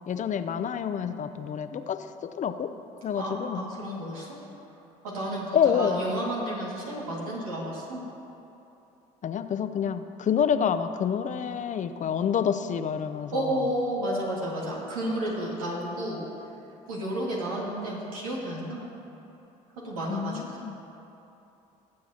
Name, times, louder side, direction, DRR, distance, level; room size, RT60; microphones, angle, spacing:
voice 1, 0.1-2.1 2.4-2.7 3.0-3.6 5.5-6.0 9.2-13.6 20.1-20.8, left 8 dB, 45° left, 10 dB, 0.6 m, -28 dB
voice 2, 3.2-4.3 5.0-8.0 13.3-16.2 16.9-18.8 19.8-20.4, right 1 dB, 90° right, -4 dB, 2.1 m, -31 dB
19.0 x 7.6 x 2.9 m, 2.9 s
hypercardioid pair, 55°, 18 cm